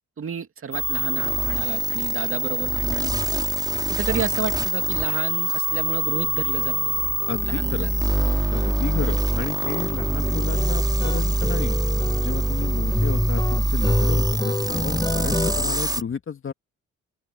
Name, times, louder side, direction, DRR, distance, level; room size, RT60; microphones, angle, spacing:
voice 1, 0.2-3.4 3.9-6.8 7.4-8.0, right 7 dB, 45° right, 2.5 m, -31 dB
sound 1, 0.7-16.0, right 2 dB, 15° right, 4.9 m, -24 dB
sound 2, 5.7-5.8 6.1-6.3 6.6-15.6, left 2 dB, 15° left, 7.1 m, -29 dB
voice 2, 7.3-7.9 8.5-11.8 12.2-16.5, left 7 dB, 45° left, 2.2 m, -32 dB
open air
cardioid pair, 90°, 30 cm